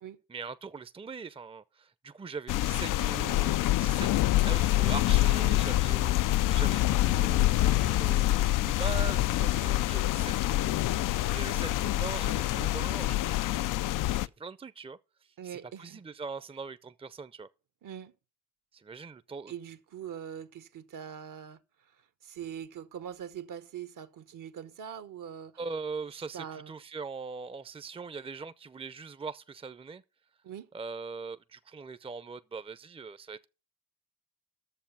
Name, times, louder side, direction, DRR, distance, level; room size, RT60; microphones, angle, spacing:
voice 1, 0.3-4.1 4.4-8.3 8.6-13.4 14.1-15.0 15.4-17.5 18.7-19.5 25.6-30.0 30.7-33.5, right 4 dB, 15° right, 0.6 m, -41 dB
sound 1, 2.5-14.3, left 15 dB, 60° left, 0.5 m, -26 dB
voice 2, 15.4-16.0 17.8-18.1 19.5-21.6 22.2-25.6 26.3-26.7 30.4-30.7, right 9 dB, 60° right, 1.0 m, -42 dB
11.0 x 7.1 x 5.5 m
hypercardioid pair, 45°, 36 cm